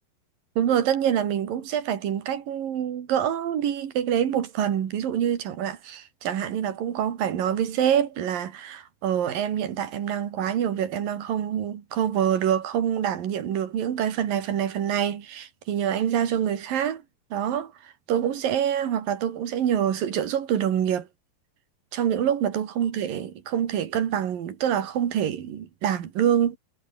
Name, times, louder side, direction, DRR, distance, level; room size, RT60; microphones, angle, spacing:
voice 1, 0.6-17.0 17.3-21.1 21.9-26.6, right 9 dB, 65° right, 3.8 m, -26 dB
omnidirectional pair, 4.5 m